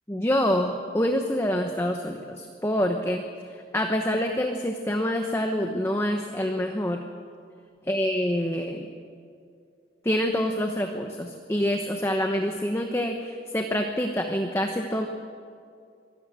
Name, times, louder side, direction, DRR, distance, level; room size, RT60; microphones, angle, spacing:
voice 1, 0.1-3.2 3.5-7.0 7.9-8.9 10.0-15.1, equal, 15° left, 4 dB, 0.9 m, -26 dB
24.0 x 13.0 x 9.0 m, 2.3 s
head